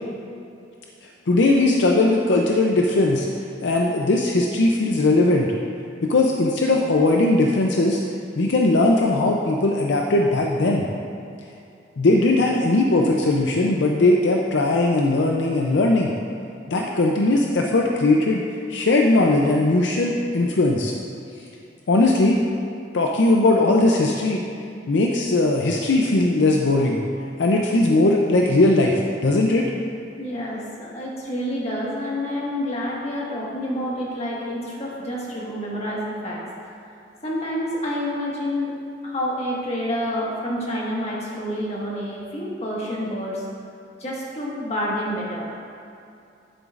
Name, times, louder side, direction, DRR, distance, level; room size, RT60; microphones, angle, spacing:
voice 1, 1.3-3.3 3.6-5.5 6.0-8.0 8.4-10.9 12.0-16.1 16.7-18.4 18.7-20.9 21.9-22.4 22.9-24.4 24.9-27.0 27.4-29.7, left 2 dB, 70° left, 0 dB, 0.5 m, -19 dB
voice 2, 30.2-36.4 37.2-38.7 39.0-43.5 44.0-45.4, equal, 35° left, -5 dB, 1.6 m, -28 dB
10.0 x 7.9 x 2.5 m, 2.6 s
head